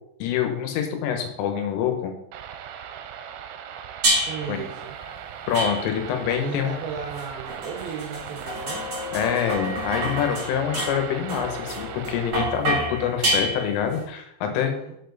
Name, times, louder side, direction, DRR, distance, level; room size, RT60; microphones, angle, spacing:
voice 1, 0.2-2.1 4.5-4.6 5.5-6.7 9.1-14.7, left 8 dB, 85° left, 5 dB, 3.6 m, -26 dB
sound 1, 2.3-12.3, right 8 dB, 90° right, 3.2 m, -39 dB
sound 2, 4.0-4.6 5.5-6.2 7.2-14.0, equal, 30° right, 3.1 m, -28 dB
voice 2, 4.3-5.0 6.4-8.8 14.5-14.9, right 6 dB, 70° right, -1 dB, 3.1 m, -35 dB
7.2 x 7.0 x 4.0 m, 0.78 s
omnidirectional pair, 5.6 m